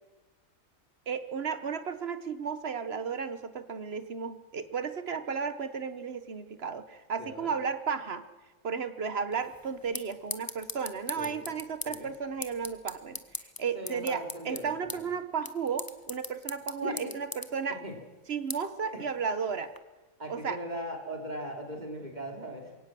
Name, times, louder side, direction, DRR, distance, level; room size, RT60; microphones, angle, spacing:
voice 1, 1.1-8.2 8.6-13.2 13.6-17.8 18.3-19.7 20.3-20.6, right 6 dB, 50° right, 12 dB, 1.4 m, -34 dB
voice 2, 7.2-7.5 11.2-11.5 11.8-12.1 13.7-15.1 16.8-17.1 17.8-18.0 18.9-19.1 20.2-22.8, equal, 30° right, 2 dB, 3.7 m, -39 dB
sound 1, 9.3-19.8, left 2 dB, 15° left, 1.0 m, -43 dB
22.5 x 17.5 x 7.7 m, 1.2 s
omnidirectional pair, 1.4 m